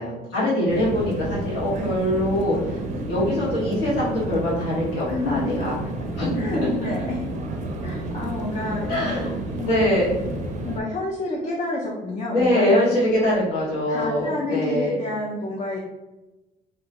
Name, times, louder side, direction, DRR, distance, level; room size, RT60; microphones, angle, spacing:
voice 1, 0.0-2.8 3.1-5.7 6.2-6.8 8.9-9.4 9.6-10.1 12.3-14.9, left 1 dB, 80° left, -7 dB, 1.5 m, -23 dB
sound 1, 0.7-10.8, right 2 dB, 45° right, 0.4 m, -31 dB
voice 2, 5.1-5.6 6.4-7.2 7.8-9.2 9.6-9.9 10.6-13.0 13.9-15.8, left 2 dB, 40° left, -2 dB, 0.5 m, -29 dB
2.9 x 2.1 x 2.9 m, 1.0 s
cardioid pair, 110°, 17 cm